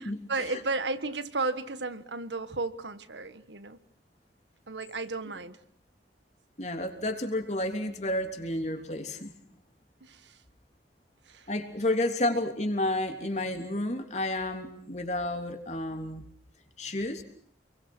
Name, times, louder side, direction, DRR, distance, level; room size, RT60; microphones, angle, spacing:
voice 1, 0.3-3.8 4.7-5.6 10.0-10.4 11.3-11.5, right 3 dB, 85° right, 12 dB, 1.6 m, -33 dB
voice 2, 6.6-9.3 11.5-16.2 16.8-17.2, left 1 dB, 40° left, 5 dB, 3.2 m, -31 dB
29.0 x 22.5 x 6.2 m, 0.63 s
head